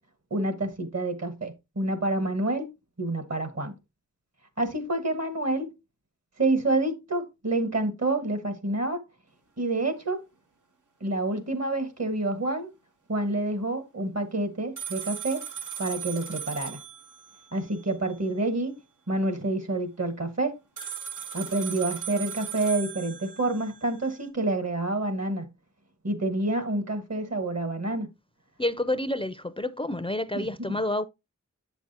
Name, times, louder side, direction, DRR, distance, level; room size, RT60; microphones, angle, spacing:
voice 1, 0.3-2.7 3.0-3.7 4.6-5.7 6.4-9.0 9.6-10.2 11.0-12.7 13.1-15.4 15.8-16.8 17.5-18.7 19.1-20.5 21.3-25.5 26.0-28.1 30.3-30.8, right 2 dB, 60° right, 1.4 m, -28 dB
sound 1, 14.8-18.1 20.8-24.1, right 8 dB, 90° right, 1.0 m, -38 dB
voice 2, 28.6-31.0, left 1 dB, 20° left, 0.4 m, -29 dB
8.0 x 5.9 x 2.8 m
wide cardioid pair, 50°, 30 cm